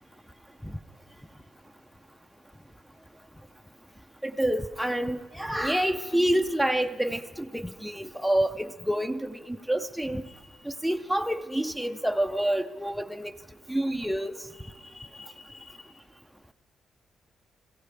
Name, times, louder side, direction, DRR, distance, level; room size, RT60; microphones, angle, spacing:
voice 1, 4.2-7.2 7.5-10.2 10.8-13.3 13.7-14.3 15.1-15.3, right 1 dB, ahead, 0.4 m, -27 dB
21.0 x 16.0 x 3.4 m
cardioid pair, 115°, 0 cm